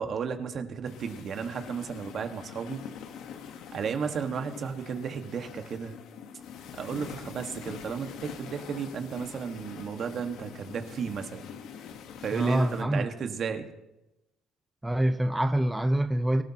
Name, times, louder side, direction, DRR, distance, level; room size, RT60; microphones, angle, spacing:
voice 1, 0.0-2.8 3.7-5.9 6.8-11.4 12.2-13.6, right 6 dB, 55° right, 6 dB, 1.7 m, -33 dB
sound 1, 0.9-12.8, left 7 dB, 75° left, 1.4 m, -44 dB
voice 2, 12.3-13.1 14.8-16.4, right 1 dB, 10° right, 7 dB, 0.9 m, -25 dB
25.0 x 13.0 x 3.0 m, 0.94 s
supercardioid pair, 70°, 0 cm